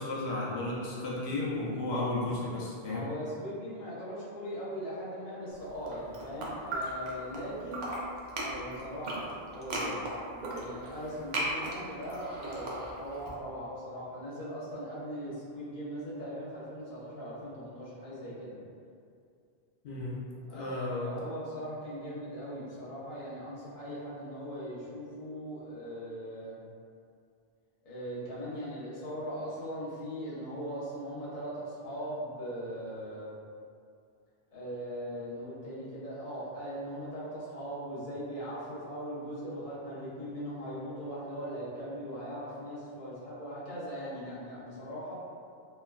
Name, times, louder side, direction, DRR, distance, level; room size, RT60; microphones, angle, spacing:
voice 1, 0.0-3.1 19.8-20.2 20.5-21.2, left 2 dB, 85° left, -6 dB, 0.9 m, -33 dB
voice 2, 2.8-7.9 8.3-18.6 20.5-26.6 27.8-33.3 34.5-45.1, equal, 40° left, -10 dB, 0.9 m, -40 dB
sound 1, 5.7-7.4 7.7-13.3, right 1 dB, 55° right, 0.6 m, -36 dB
3.3 x 2.1 x 2.2 m, 2.4 s
omnidirectional pair, 1.0 m